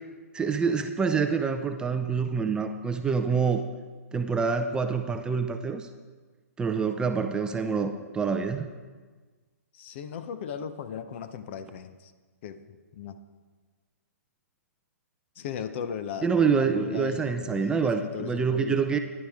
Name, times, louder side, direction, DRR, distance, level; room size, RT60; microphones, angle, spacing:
voice 1, 0.3-3.6 4.1-5.9 6.6-8.7 16.2-19.0, right 5 dB, 10° right, 6 dB, 0.5 m, -26 dB
voice 2, 9.7-12.1 12.4-13.2 15.4-19.0, left 7 dB, 45° left, 11 dB, 0.8 m, -37 dB
15.0 x 11.0 x 3.6 m, 1.4 s
hypercardioid pair, 135°, 8 cm